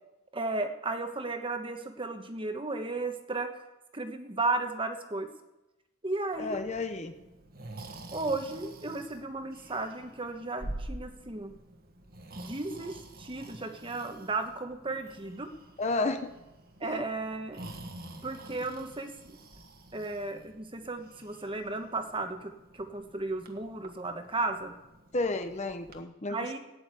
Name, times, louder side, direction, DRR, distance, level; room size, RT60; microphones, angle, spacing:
voice 1, 0.3-3.6 3.9-5.3 6.0-6.6 8.1-11.5 12.4-15.5 16.8-17.6 18.2-19.4 19.9-24.7 26.3-26.6, right 2 dB, 25° right, 7 dB, 1.1 m, -34 dB
Breathing, 6.3-26.0, right 1 dB, 40° right, 1.4 m, -48 dB
voice 2, 6.4-7.1 15.8-16.3 16.8-17.0 25.1-26.4, left 3 dB, 30° left, 8 dB, 0.8 m, -31 dB
12.5 x 9.6 x 8.2 m, 1.0 s
head